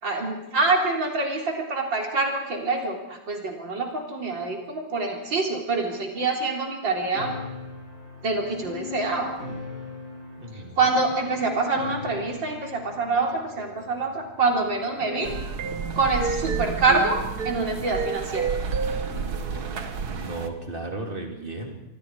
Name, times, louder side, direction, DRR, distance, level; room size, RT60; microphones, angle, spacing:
voice 1, 0.0-7.3 8.2-9.3 10.8-15.3 16.0-18.5, right 3 dB, 70° right, 1 dB, 4.5 m, -26 dB
sound 1, 7.1-15.5, left 4 dB, 50° left, 4.6 m, -39 dB
voice 2, 10.4-10.8 19.1-21.8, right 2 dB, 25° right, 2 dB, 3.3 m, -36 dB
sound 2, 15.2-20.5, right 5 dB, 55° right, 1.8 m, -29 dB
27.0 x 23.5 x 4.9 m, 0.83 s
omnidirectional pair, 2.1 m